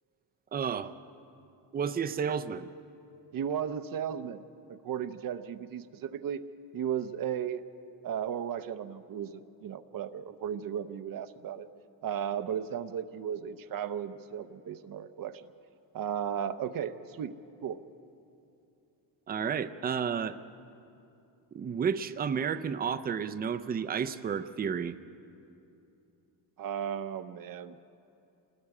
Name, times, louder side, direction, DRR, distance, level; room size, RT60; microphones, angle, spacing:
voice 1, 0.5-0.9 1.7-2.7 19.3-20.4 21.5-25.0, right 7 dB, 20° right, 10 dB, 0.4 m, -31 dB
voice 2, 3.3-4.4 4.7-6.4 6.7-7.6 8.0-11.7 12.0-15.4 15.9-17.3 17.6-17.8 26.6-27.8, right 8 dB, 50° right, 11 dB, 0.7 m, -35 dB
27.5 x 20.0 x 4.8 m, 2.7 s
cardioid pair, 155°, 45 cm